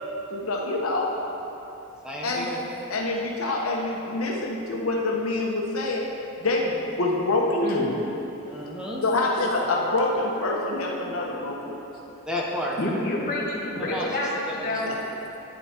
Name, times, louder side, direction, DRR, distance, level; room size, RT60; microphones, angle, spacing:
voice 1, 0.3-1.1 2.2-2.5 2.9-6.0 6.4-7.9 9.0-11.9 14.9-15.0, left 2 dB, 80° left, -2 dB, 1.3 m, -26 dB
voice 2, 2.0-2.6 8.4-9.0 12.3-12.8 13.8-14.1 14.7-14.8, left 1 dB, 5° right, -4 dB, 0.9 m, -31 dB
voice 3, 12.8-15.2, left 1 dB, 40° left, -5 dB, 2.0 m, -28 dB
10.5 x 9.5 x 4.5 m, 3.0 s
head